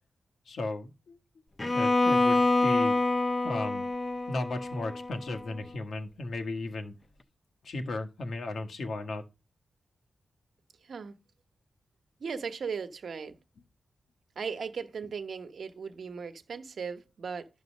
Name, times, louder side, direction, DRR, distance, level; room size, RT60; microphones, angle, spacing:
voice 1, 0.5-1.2 1.7-2.9 3.4-3.9 4.3-6.9 7.6-9.2, left 2 dB, 70° left, 1.4 m, -35 dB
Bowed string instrument, 1.6-5.6, left 2 dB, 25° left, 0.6 m, -27 dB
voice 2, 10.8-11.1 12.2-13.3 14.4-17.5, right 5 dB, 60° right, 1.1 m, -37 dB
11.5 x 3.9 x 6.4 m
wide cardioid pair, 155°, 0 cm